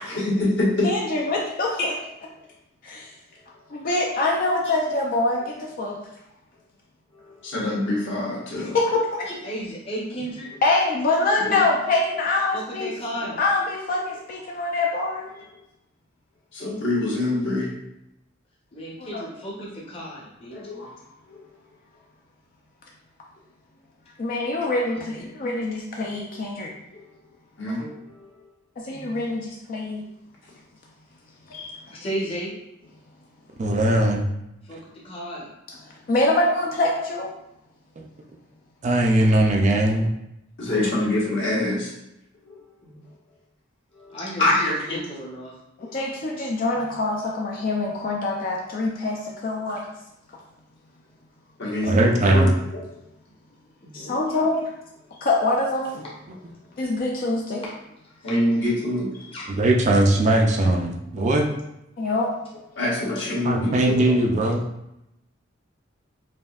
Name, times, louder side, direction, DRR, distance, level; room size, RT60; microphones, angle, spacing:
voice 1, 0.1-0.9 1.8-1.9 7.4-8.7 11.5-11.6 16.5-17.7 20.5-20.9 21.3-21.4 27.6-27.9 40.6-41.9 42.4-42.6 44.0-45.0 45.8-45.9 51.6-52.5 58.2-59.1 62.7-64.1, left 1 dB, 60° left, -6 dB, 1.3 m, -25 dB
voice 2, 0.8-1.9 2.8-3.1 3.7-6.0 8.7-9.3 10.6-12.9 13.4-15.3 19.0-19.2 24.2-26.7 28.8-30.0 31.5-31.8 35.7-35.8 36.1-37.3 45.8-49.9 53.9-54.7 55.2-56.0 56.8-57.6 62.0-62.3, left 2 dB, 45° left, -1 dB, 0.4 m, -24 dB
voice 3, 9.4-10.5 12.5-13.4 18.7-20.6 28.9-29.1 31.9-32.5 34.7-35.5 42.8-43.0 44.1-45.5 46.7-46.8 53.8-54.4 57.6-57.7 58.2-58.3 59.3-59.5, equal, 30° left, -6 dB, 0.8 m, -34 dB
voice 4, 33.6-34.3 38.0-38.1 38.8-40.1 51.8-52.5 59.5-61.5 63.4-64.6, right 1 dB, 35° right, 1 dB, 0.4 m, -20 dB
5.1 x 2.6 x 2.4 m, 0.85 s
head